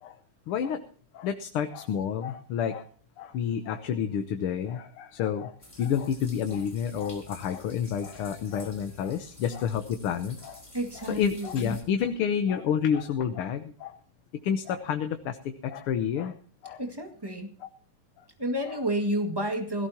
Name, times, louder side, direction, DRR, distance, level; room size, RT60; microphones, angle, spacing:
voice 1, 0.5-0.8 1.1-2.9 3.2-10.6 11.0-14.0 14.4-16.4 16.6-16.8, left 8 dB, 90° left, 8 dB, 1.9 m, -29 dB
sound 1, 5.6-11.8, left 2 dB, 15° left, 3.5 m, -50 dB
voice 2, 10.7-11.8 16.8-17.5 18.4-19.9, right 1 dB, 10° right, 4 dB, 1.9 m, -30 dB
17.5 x 16.5 x 2.9 m, 0.42 s
omnidirectional pair, 2.3 m